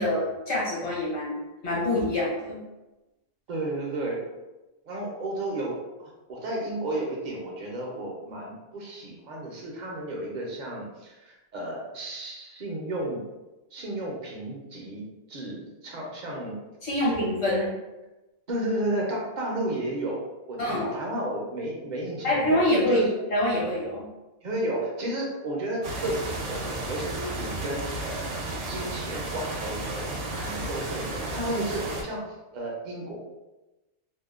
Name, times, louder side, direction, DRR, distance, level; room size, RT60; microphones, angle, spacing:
voice 1, 0.0-2.6 16.8-17.7 20.6-20.9 22.2-23.0 23.3-24.0, left 1 dB, 65° left, -7 dB, 1.3 m, -25 dB
voice 2, 3.5-4.2 4.8-13.2 13.7-15.0 15.3-16.6 17.6-17.7 18.5-23.1 24.4-30.1 30.3-32.2 32.5-33.2, right 1 dB, 50° right, -2 dB, 0.6 m, -33 dB
sound 1, 25.8-32.0, right 2 dB, 80° right, 0.9 m, -33 dB
2.7 x 2.1 x 2.3 m, 1.0 s
omnidirectional pair, 1.2 m